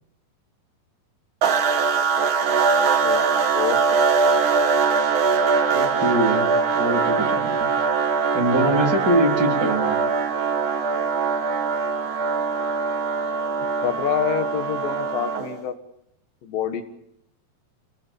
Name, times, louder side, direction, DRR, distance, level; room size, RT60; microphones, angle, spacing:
sound 1, 1.4-15.6, right 5 dB, 50° right, 1.6 m, -22 dB
voice 1, 5.7-7.7 8.3-10.0, right 1 dB, 30° right, 1 dB, 4.0 m, -23 dB
voice 2, 13.8-15.7 16.4-16.8, left 9 dB, 75° left, 8 dB, 3.4 m, -26 dB
27.5 x 20.0 x 7.2 m, 0.77 s
omnidirectional pair, 4.0 m